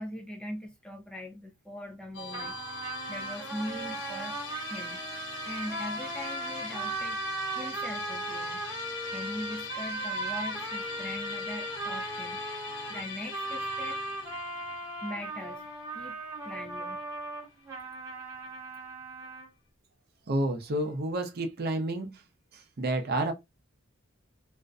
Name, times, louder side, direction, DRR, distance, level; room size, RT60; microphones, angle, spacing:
voice 1, 0.0-5.0 5.4-8.7 9.1-12.4 12.9-14.0 15.0-17.1, left 1 dB, 5° left, 0.4 m, -41 dB
Musical instrument, 2.1-17.3, left 4 dB, 55° left, 0.7 m, -42 dB
sound 1, 2.3-19.5, right 2 dB, 15° right, 0.8 m, -37 dB
voice 2, 20.3-22.2 22.5-23.3, right 1 dB, 50° right, 0.5 m, -30 dB
2.4 x 2.1 x 2.4 m
head